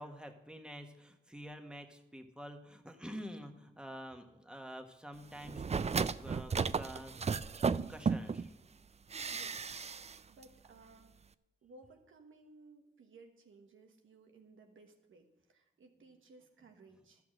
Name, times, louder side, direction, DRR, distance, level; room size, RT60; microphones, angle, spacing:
voice 1, 0.0-7.1 7.9-8.5, equal, 5° right, 4 dB, 1.4 m, -48 dB
sound 1, 5.4-8.5 9.1-10.2 10.4-10.5, right 5 dB, 35° right, 0.4 m, -34 dB
voice 2, 9.3-11.1 11.6-17.2, right 3 dB, 85° right, 4 dB, 1.2 m, -60 dB
12.0 x 6.0 x 6.5 m, 0.94 s
cardioid pair, 45°, 20 cm